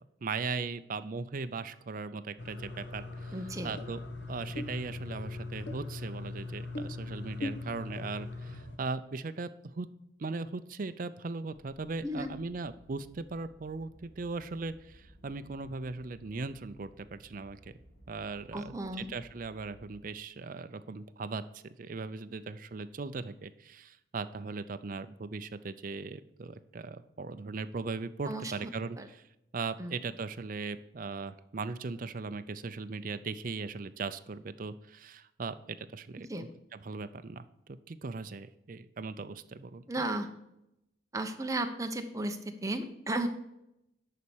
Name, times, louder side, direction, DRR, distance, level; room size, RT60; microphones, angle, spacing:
voice 1, 0.2-3.4 3.6-4.0 4.3-9.5 9.7-9.9 10.2-17.6 18.1-18.7 19.1-29.2 29.5-36.3 36.7-40.0, right 4 dB, 45° right, 11 dB, 0.5 m, -38 dB
sound 1, 2.4-8.8, left 2 dB, 65° left, 1.3 m, -40 dB
voice 2, 3.3-3.7 12.0-12.3 18.5-19.1 28.3-28.7 29.0-29.1 29.8-30.0 36.3-36.4 39.9-40.3 41.1-43.3, right 1 dB, 15° right, 6 dB, 0.8 m, -34 dB
sound 2, 11.5-20.0, equal, 35° left, 2.5 m, -58 dB
11.0 x 4.2 x 7.1 m, 0.84 s
head